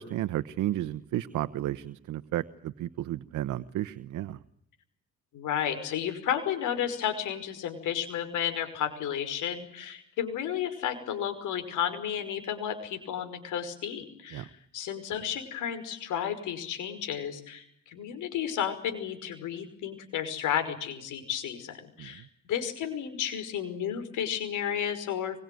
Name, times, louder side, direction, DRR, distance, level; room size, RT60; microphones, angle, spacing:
voice 1, 0.0-4.4 14.3-14.5 22.0-22.3, right 13 dB, 80° right, 11 dB, 1.0 m, -33 dB
voice 2, 5.3-25.4, left 9 dB, 85° left, 9 dB, 5.5 m, -32 dB
24.5 x 23.0 x 9.4 m, 0.70 s
cardioid pair, 90°, 30 cm